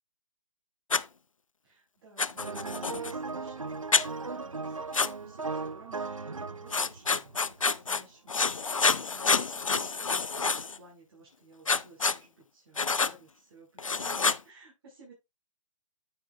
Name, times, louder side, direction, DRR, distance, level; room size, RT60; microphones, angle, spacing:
Writing, 0.9-1.0 2.2-3.1 3.9-4.1 4.9-5.1 6.7-8.0 8.3-10.8 11.7-12.2 12.8-13.1 13.8-14.4, left 4 dB, 85° left, 0.6 m, -27 dB
voice 1, 1.6-15.1, right 3 dB, 50° right, -4 dB, 5.5 m, -55 dB
sound 1, 2.4-7.8 8.4-8.5, right 4 dB, 90° right, 0.7 m, -37 dB
11.0 x 8.1 x 2.5 m, 0.21 s
figure-of-eight pair, 135°, 17 cm